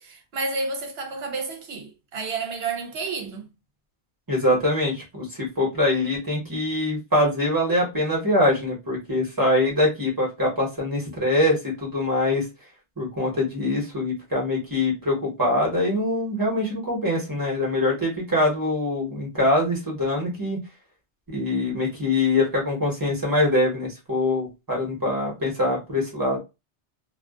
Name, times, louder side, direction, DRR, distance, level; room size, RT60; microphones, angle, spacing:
voice 1, 0.0-3.5, right 4 dB, 65° right, 0.9 m, -30 dB
voice 2, 4.3-12.5 13.0-20.6 21.3-26.4, left 1 dB, 20° right, 1.0 m, -23 dB
2.4 x 2.3 x 2.3 m
omnidirectional pair, 1.2 m